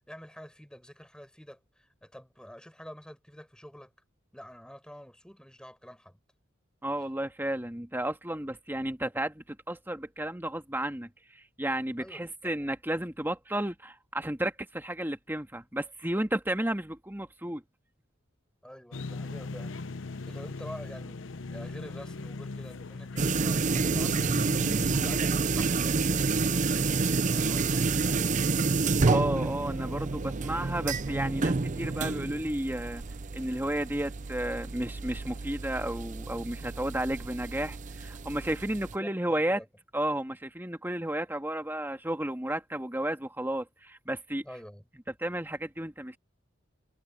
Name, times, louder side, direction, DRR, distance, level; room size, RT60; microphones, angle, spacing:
voice 1, 0.1-3.9 4.3-6.2 12.0-12.5 18.6-19.8 20.3-28.3 38.8-39.7 44.4-44.9, equal, 5° left, 6.0 m, -48 dB
voice 2, 6.8-17.6 29.1-33.0 33.3-39.6 39.9-44.4 45.2-46.2, right 1 dB, 10° right, 1.9 m, -32 dB
sound 1, 18.9-25.2, left 3 dB, 75° left, 0.8 m, -39 dB
sound 2, 23.2-39.0, right 4 dB, 40° right, 0.6 m, -29 dB
head